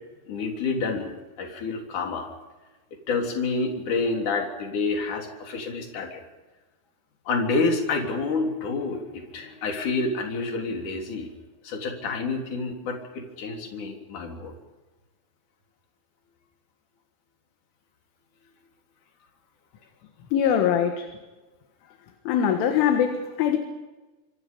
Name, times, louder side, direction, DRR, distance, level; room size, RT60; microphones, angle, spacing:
voice 1, 0.3-2.3 3.1-6.2 7.3-11.3 11.6-14.5, left 3 dB, 40° left, 2 dB, 4.4 m, -28 dB
voice 2, 20.3-21.1 22.3-23.6, left 8 dB, 75° left, 5 dB, 4.0 m, -22 dB
27.0 x 25.0 x 5.4 m, 1.2 s
omnidirectional pair, 5.9 m